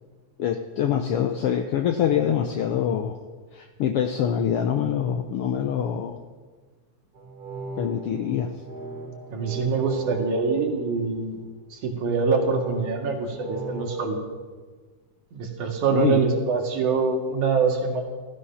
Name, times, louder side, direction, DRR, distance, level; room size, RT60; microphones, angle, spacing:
voice 1, 0.4-3.2 3.5-6.2 7.8-8.5 15.9-16.2, left 9 dB, 80° left, 7 dB, 1.3 m, -25 dB
sound 1, 7.1-11.5 12.4-14.1, right 2 dB, 30° right, 4.4 m, -38 dB
voice 2, 9.3-11.4 11.7-14.2 15.3-18.0, right 5 dB, 80° right, 2 dB, 3.4 m, -24 dB
14.5 x 14.0 x 5.7 m, 1.5 s
omnidirectional pair, 3.4 m